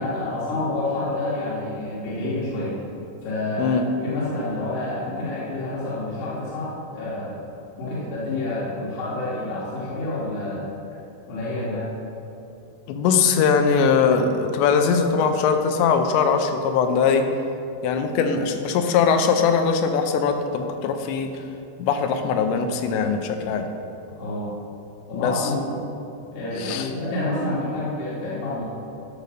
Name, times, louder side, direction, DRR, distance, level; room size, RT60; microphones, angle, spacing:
voice 1, 0.0-2.8 3.2-7.5 7.8-10.7 11.3-11.9 24.2-24.5 25.1-25.8 26.3-28.6, left 2 dB, 70° left, -8 dB, 3.7 m, -28 dB
voice 2, 12.9-17.2 17.8-21.3 21.8-23.7 25.1-25.5 26.6-26.9, left 6 dB, 90° left, 6 dB, 3.0 m, -21 dB
11.0 x 5.1 x 6.4 m, 2.7 s
omnidirectional pair, 5.0 m